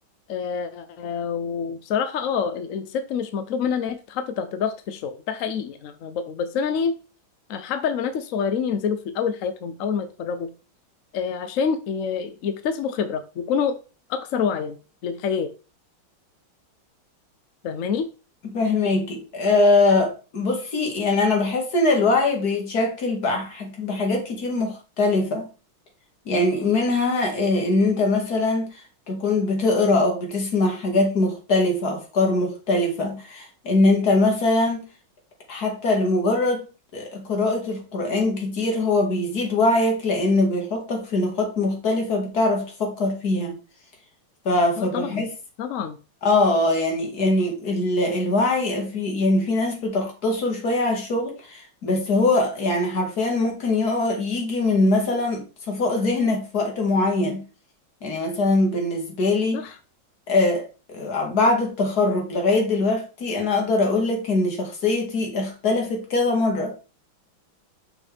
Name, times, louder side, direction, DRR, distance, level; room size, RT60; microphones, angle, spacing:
voice 1, 0.3-6.9 7.5-10.5 11.1-13.8 14.1-14.8 15.0-15.5 17.6-18.1 44.8-45.2 45.6-46.0 59.5-59.7, left 6 dB, 70° left, 0.7 m, -27 dB
voice 2, 18.5-25.5 26.3-28.7 29.1-34.9 35.5-36.6 36.9-43.6 44.5-45.3 46.2-57.4 58.0-59.6 60.3-60.6 60.9-66.7, left 2 dB, 50° left, 2.2 m, -22 dB
6.3 x 6.0 x 3.4 m
omnidirectional pair, 2.2 m